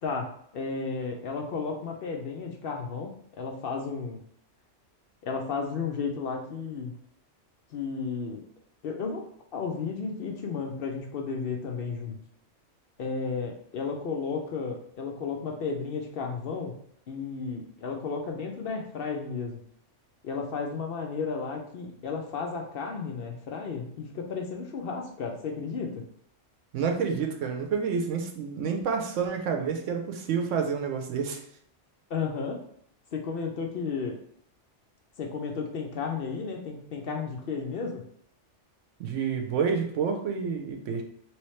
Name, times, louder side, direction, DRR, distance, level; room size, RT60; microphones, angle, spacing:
voice 1, 0.0-4.2 5.2-6.9 7.7-8.4 8.8-9.3 9.5-12.2 13.0-16.7 17.1-19.6 20.2-26.0 32.1-32.6 33.1-34.2 35.2-38.0, left 5 dB, 60° left, 2 dB, 0.7 m, -33 dB
voice 2, 26.7-31.4 39.0-41.0, right 6 dB, 85° right, 4 dB, 1.0 m, -29 dB
3.1 x 3.0 x 3.1 m, 0.67 s
omnidirectional pair, 1.2 m